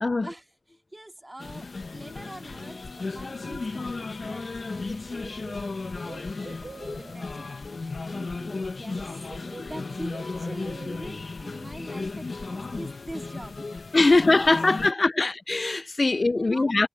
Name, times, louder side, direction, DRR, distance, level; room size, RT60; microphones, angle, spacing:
voice 1, 0.1-9.2 9.6-13.8 14.1-14.3 14.6-15.2 16.0-16.7, right 1 dB, 20° right, 3.7 m, -44 dB
sound 1, 1.4-14.9, left 3 dB, 90° left, 1.1 m, -35 dB
Bird, 4.4-4.5 4.8-7.3 8.4-8.6 8.9-11.3, right 3 dB, 75° right, 2.0 m, -46 dB
voice 2, 13.9-16.9, left 3 dB, 55° left, 0.4 m, -21 dB
wide cardioid pair, 70°, 0 cm